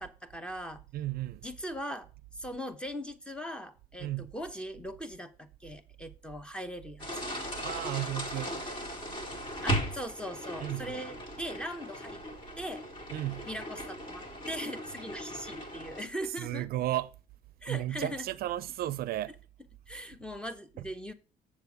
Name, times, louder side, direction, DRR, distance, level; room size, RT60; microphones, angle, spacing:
voice 1, 0.0-0.8 1.4-2.1 2.3-7.2 9.6-12.2 12.6-12.8 13.5-16.7 17.6-18.3 19.9-21.1, equal, 5° left, 0.9 m, -40 dB
voice 2, 0.9-1.5 4.0-4.3 7.6-8.6 9.0-9.2 10.6-11.0 13.1-13.5 16.3-17.1 17.7-19.3 20.8-20.9, right 14 dB, 65° right, 0.5 m, -34 dB
sound 1, 7.0-16.1, equal, 30° left, 2.2 m, -37 dB
7.3 x 6.7 x 4.7 m
cardioid pair, 110°, 17 cm